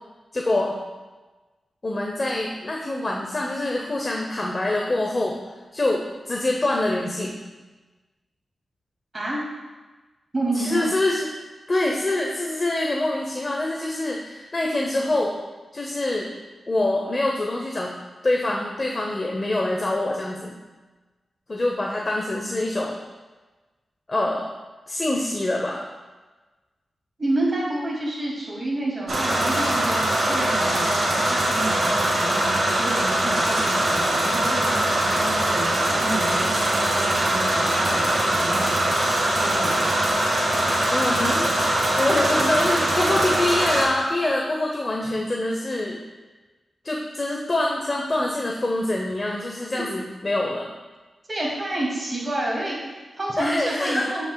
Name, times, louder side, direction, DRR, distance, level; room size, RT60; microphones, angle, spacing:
voice 1, 0.3-0.8 1.8-5.4 5.7-7.4 10.6-11.3 11.7-15.4 15.7-16.3 16.7-17.9 18.2-20.5 21.5-23.0 24.1-24.5 24.9-25.8 40.7-46.0 46.8-50.7 53.4-54.1, left 2 dB, 25° left, -1 dB, 0.7 m, -25 dB
voice 2, 10.3-10.9 27.2-39.0 39.3-39.9 49.7-49.8 51.3-54.3, right 1 dB, 25° right, -4 dB, 2.2 m, -29 dB
sound 1, 29.1-43.8, right 1 dB, 50° right, 2.2 m, -22 dB
13.5 x 5.7 x 2.2 m, 1.2 s
wide cardioid pair, 180°, 0 cm